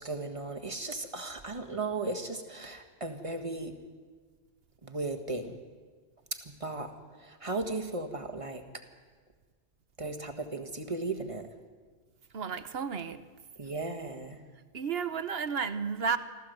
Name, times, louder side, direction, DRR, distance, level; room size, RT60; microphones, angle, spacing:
voice 1, 0.0-3.8 4.8-5.6 6.3-8.8 10.0-11.5 13.6-14.4, right 3 dB, 30° right, 1.7 m, -36 dB
voice 2, 12.3-13.3 14.7-16.2, right 6 dB, 65° right, 1.1 m, -32 dB
26.0 x 15.0 x 8.0 m
omnidirectional pair, 1.1 m